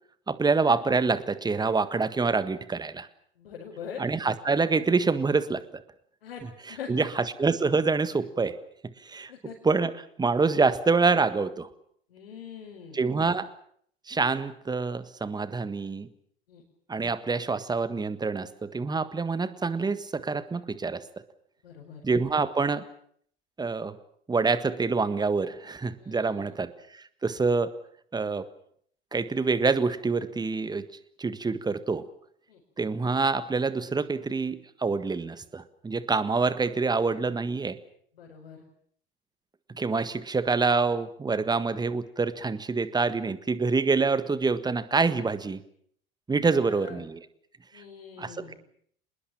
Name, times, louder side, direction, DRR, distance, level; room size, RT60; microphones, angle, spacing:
voice 1, 0.3-3.1 4.0-5.6 6.4-8.6 8.8-9.3 9.6-11.7 12.9-13.5 14.1-16.1 16.9-21.0 22.0-22.8 23.6-24.0 24.3-27.7 28.1-28.5 29.1-30.8 31.2-32.0 32.8-37.8 39.7-45.6 46.3-47.2 47.7-47.8 48.2-48.5, right 4 dB, 15° right, 14 dB, 1.6 m, -26 dB
voice 2, 3.4-4.0 6.2-6.4 6.7-7.3 9.3-9.6 12.1-13.0 16.5-16.6 21.6-22.0 26.0-26.5 32.5-32.6 38.2-38.6 46.4-47.0 47.7-48.5, left 7 dB, 70° left, -2 dB, 5.1 m, -43 dB
26.5 x 20.5 x 7.4 m, 0.65 s
figure-of-eight pair, 75°, 30 cm